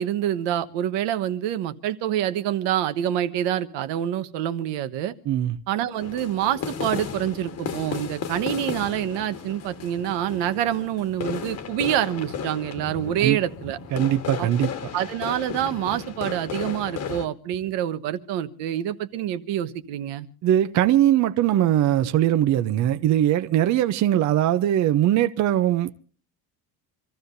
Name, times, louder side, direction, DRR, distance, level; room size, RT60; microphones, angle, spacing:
voice 1, 0.0-5.1 5.7-13.8 14.4-14.5 14.9-20.3, right 11 dB, 75° right, 1.3 m, -26 dB
voice 2, 5.3-5.6 13.2-13.4 13.9-14.7 20.4-25.9, right 12 dB, 40° right, 0.6 m, -21 dB
sound 1, 6.0-17.3, left 7 dB, 35° left, 1.4 m, -34 dB
27.0 x 14.5 x 2.6 m
cardioid pair, 170°, 43 cm